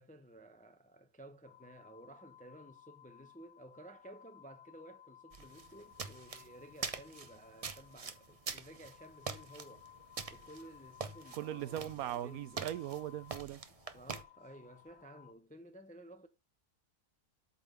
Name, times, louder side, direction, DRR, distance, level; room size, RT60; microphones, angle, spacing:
voice 1, 0.0-10.0 10.3-12.7 13.7-16.3, right 1 dB, 10° left, 0.4 m, -55 dB
sound 1, 1.4-15.3, left 11 dB, 60° left, 0.8 m, -60 dB
sound 2, 5.3-14.2, right 5 dB, 40° right, 0.5 m, -45 dB
sound 3, 9.3-15.0, left 1 dB, 30° left, 2.8 m, -73 dB
voice 2, 11.4-13.6, right 12 dB, 75° right, 1.0 m, -39 dB
8.3 x 4.1 x 6.6 m
omnidirectional pair, 1.6 m